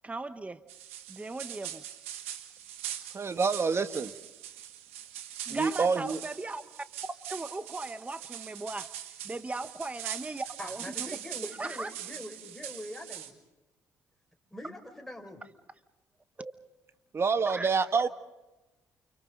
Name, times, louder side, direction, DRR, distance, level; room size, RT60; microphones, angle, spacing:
voice 1, 0.0-0.6 1.1-1.8 5.5-6.6 7.3-8.9 9.2-11.1 11.6-11.9 16.4-16.5 17.5-18.1, right 2 dB, 20° right, 11 dB, 1.2 m, -37 dB
sound 1, 0.7-13.3, right 11 dB, 90° right, 1.4 m, -42 dB
voice 2, 3.1-4.1 5.5-6.2 17.1-18.1, right 5 dB, 40° right, 10 dB, 1.6 m, -27 dB
voice 3, 10.6-13.3 14.5-15.4, left 1 dB, 5° left, 3 dB, 5.2 m, -43 dB
29.5 x 29.5 x 3.8 m, 1.1 s
hypercardioid pair, 50°, 7 cm